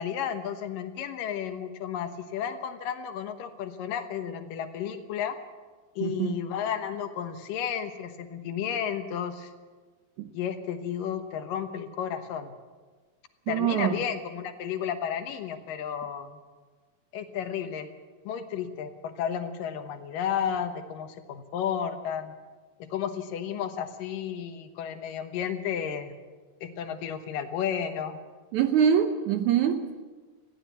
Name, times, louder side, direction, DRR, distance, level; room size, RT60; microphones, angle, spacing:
voice 1, 0.0-5.4 6.0-9.5 10.3-12.5 13.5-16.4 17.1-17.9 18.3-22.3 22.8-26.2 26.6-28.2, left 8 dB, 75° left, 8 dB, 2.7 m, -32 dB
voice 2, 6.0-6.4 10.2-10.3 13.5-14.0 28.5-29.9, right 8 dB, 70° right, 8 dB, 2.0 m, -24 dB
20.5 x 15.0 x 8.3 m, 1.4 s
omnidirectional pair, 4.1 m